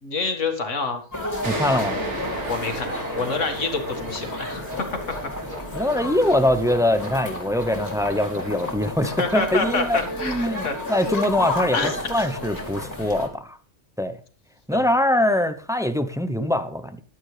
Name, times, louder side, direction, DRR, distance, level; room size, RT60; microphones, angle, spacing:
voice 1, 0.0-1.0 2.5-5.3 9.0-10.8 11.0-11.1 11.7-12.3 14.7-14.9, left 4 dB, 85° left, 2.2 m, -27 dB
sound 1, 1.1-13.3, left 2 dB, 15° left, 2.7 m, -32 dB
voice 2, 1.4-2.0 5.7-13.6 14.0-14.2 14.7-17.0, left 1 dB, 5° right, 0.6 m, -23 dB
sound 2, 1.4-8.6, right 2 dB, 70° right, 2.6 m, -35 dB
sound 3, 4.7-10.4, right 1 dB, 40° right, 4.2 m, -42 dB
15.5 x 11.0 x 3.3 m
omnidirectional pair, 1.2 m